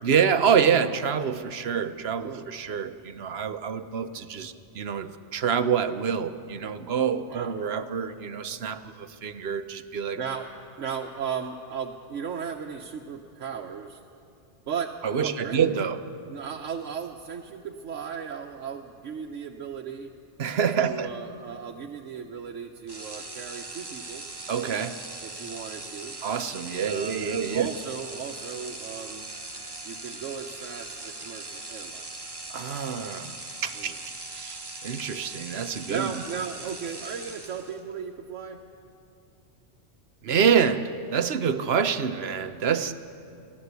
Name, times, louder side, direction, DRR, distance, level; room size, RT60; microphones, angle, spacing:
voice 1, 0.0-10.2 15.0-16.0 20.4-21.1 24.5-25.0 26.2-27.7 32.5-33.9 34.3-36.1 40.2-42.9, right 7 dB, 60° right, 10 dB, 1.0 m, -26 dB
voice 2, 10.2-10.5 10.8-14.0 14.7-14.9 15.2-15.6 16.3-20.1 20.8-24.3 25.2-26.2 26.8-29.3 29.8-32.1 33.7-34.0 35.9-38.6, right 7 dB, 80° right, 2 dB, 1.2 m, -36 dB
sound 1, 22.9-37.9, right 2 dB, 20° right, 1.1 m, -40 dB
22.5 x 15.0 x 8.2 m, 2.5 s
omnidirectional pair, 1.2 m